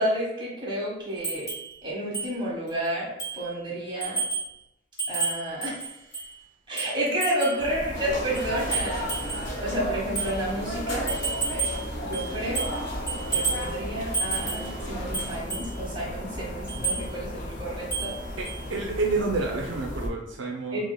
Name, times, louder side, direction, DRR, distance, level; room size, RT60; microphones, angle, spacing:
voice 1, 0.0-1.5 1.8-4.2 5.1-5.9 6.7-9.1 9.6-11.1 12.1-12.7 13.3-18.1 20.7-20.8, right 1 dB, 25° right, -6 dB, 1.4 m, -30 dB
sound 1, 1.2-1.7 2.1-2.3 2.7-2.8 3.2-3.5 4.0-4.5 5.0-6.3 6.8-7.6 8.3-9.5 10.2-10.3 11.1-11.8 12.1-12.8 13.1-13.7 14.1-14.7 15.1-15.7 16.7-17.0 17.9-18.2 18.4-18.6, right 4 dB, 20° left, 1.0 m, -30 dB
sound 2, 7.6-20.1, left 1 dB, 45° left, 0.5 m, -37 dB
sound 3, 7.9-15.4, equal, 75° left, 1.0 m, -35 dB
voice 2, 18.4-20.8, right 3 dB, 80° right, 0 dB, 0.5 m, -29 dB
4.9 x 2.0 x 2.2 m, 0.87 s
head